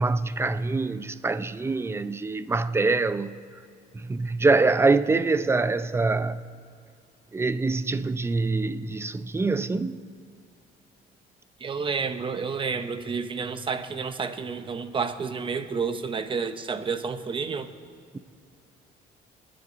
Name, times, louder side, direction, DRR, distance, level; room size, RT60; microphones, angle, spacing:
voice 1, 0.0-3.3 3.9-6.4 7.3-10.0, right 3 dB, 15° right, 0.5 m, -24 dB
voice 2, 11.6-17.7, right 5 dB, 30° right, 0.9 m, -30 dB
26.5 x 10.0 x 4.0 m
cardioid pair, 110°, 17 cm